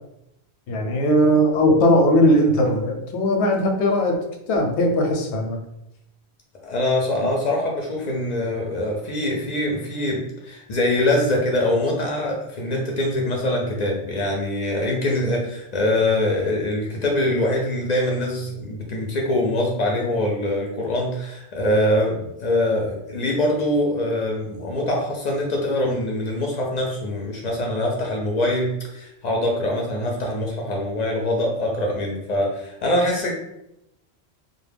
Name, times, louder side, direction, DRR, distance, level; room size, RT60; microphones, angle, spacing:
voice 1, 0.7-4.2 4.5-5.6 7.2-7.3, equal, 85° left, 3 dB, 0.8 m, -19 dB
voice 2, 6.6-33.3, left 1 dB, 55° left, -1 dB, 0.5 m, -23 dB
2.2 x 2.1 x 3.2 m, 0.84 s
omnidirectional pair, 1.1 m